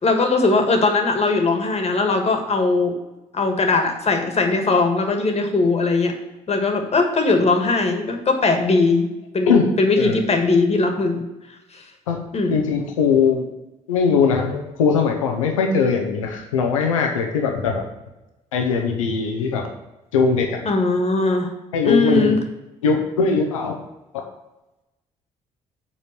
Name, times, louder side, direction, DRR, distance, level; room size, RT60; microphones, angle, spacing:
voice 1, 0.0-3.0 3.3-6.1 6.5-11.2 11.7-11.8 12.3-12.6 20.6-21.5 21.8-22.4, left 3 dB, 40° left, 4 dB, 1.7 m, -19 dB
voice 2, 12.5-13.5 13.9-17.8 18.5-19.7 20.1-20.6 21.7-22.4 22.8-23.8, left 5 dB, 90° left, 2 dB, 0.8 m, -20 dB
7.2 x 4.3 x 6.6 m, 1.0 s
hypercardioid pair, 50°, 16 cm